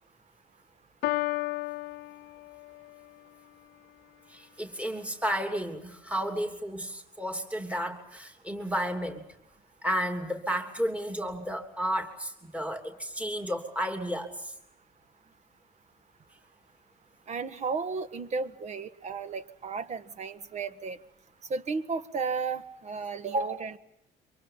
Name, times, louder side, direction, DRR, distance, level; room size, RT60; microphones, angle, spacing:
Piano, 1.0-3.0, left 19 dB, 80° left, 0.8 m, -33 dB
voice 1, 4.3-9.2 9.8-14.5, equal, 10° right, 5 dB, 3.1 m, -32 dB
voice 2, 17.3-21.0 21.5-23.8, right 4 dB, 40° right, 12 dB, 1.7 m, -33 dB
28.0 x 25.0 x 5.8 m, 0.81 s
cardioid pair, 110°, 17 cm